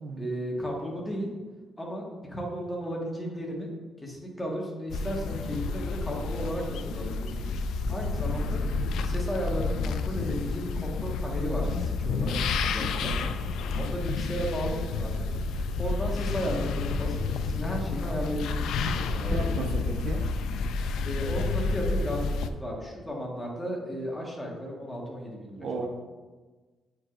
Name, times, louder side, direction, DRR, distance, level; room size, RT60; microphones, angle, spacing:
voice 1, 0.2-1.3 1.8-3.7 4.0-6.6 6.9-7.5 7.9-8.6 9.0-12.4 12.7-13.1 13.8-15.3 15.8-19.9 21.0-25.9, equal, 10° left, -2 dB, 1.4 m, -34 dB
sound 1, 4.9-22.5, left 3 dB, 85° left, 0.3 m, -30 dB
voice 2, 19.3-20.4 25.6-25.9, right 3 dB, 60° right, 4 dB, 0.6 m, -34 dB
8.6 x 4.7 x 2.5 m, 1.3 s
cardioid pair, 120°, 0 cm